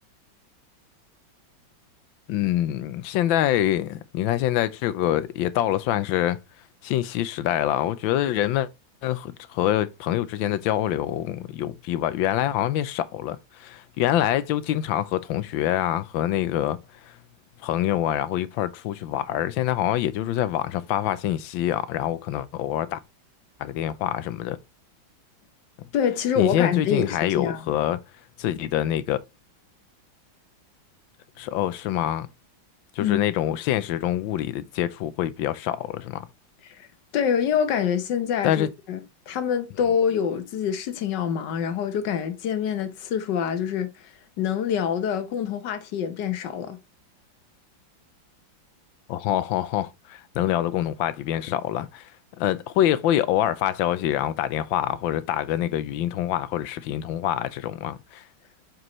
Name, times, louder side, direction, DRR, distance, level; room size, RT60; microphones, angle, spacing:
voice 1, 2.3-6.4 6.8-8.7 9.0-16.8 17.0-17.2 17.6-23.0 23.6-24.6 26.4-28.0 28.4-29.2 31.4-32.3 32.9-36.3 38.4-38.7 49.1-52.1 52.4-58.2, left 12 dB, 80° left, 1.3 m, -25 dB
voice 2, 25.9-27.6 33.0-33.2 36.6-36.9 37.1-43.9 44.4-46.8, left 8 dB, 65° left, 1.5 m, -26 dB
7.5 x 4.6 x 3.0 m
omnidirectional pair, 2.2 m